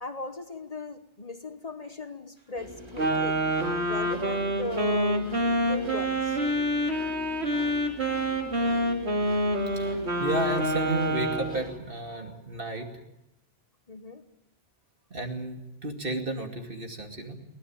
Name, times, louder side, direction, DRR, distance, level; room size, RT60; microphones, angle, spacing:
voice 1, 0.0-3.4 3.9-5.3 5.6-6.4 13.9-14.2, left 3 dB, 40° left, 9 dB, 1.2 m, -38 dB
sound 1, 2.6-11.8, left 1 dB, 25° right, 2.0 m, -44 dB
Wind instrument woodwind instrument, 3.0-11.6, equal, 80° right, 3.0 m, -27 dB
voice 2, 9.8-12.9 15.1-17.3, right 1 dB, 55° right, 4 dB, 2.8 m, -33 dB
23.0 x 18.5 x 8.8 m, 0.87 s
omnidirectional pair, 1.1 m